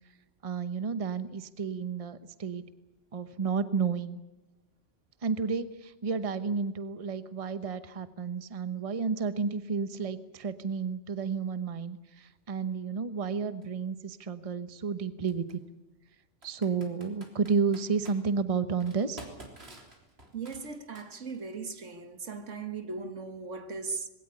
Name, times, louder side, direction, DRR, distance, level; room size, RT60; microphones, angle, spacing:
voice 1, 0.4-2.6 3.1-4.2 5.2-15.6 16.4-19.2, right 5 dB, 30° right, 1.0 m, -31 dB
Computer keyboard, 13.6-13.7 15.3-15.5 16.4-18.2 18.8-21.5, right 2 dB, 60° right, 3.8 m, -49 dB
voice 2, 20.3-24.1, right 4 dB, 80° right, 2.0 m, -38 dB
21.0 x 17.5 x 9.8 m
omnidirectional pair, 1.2 m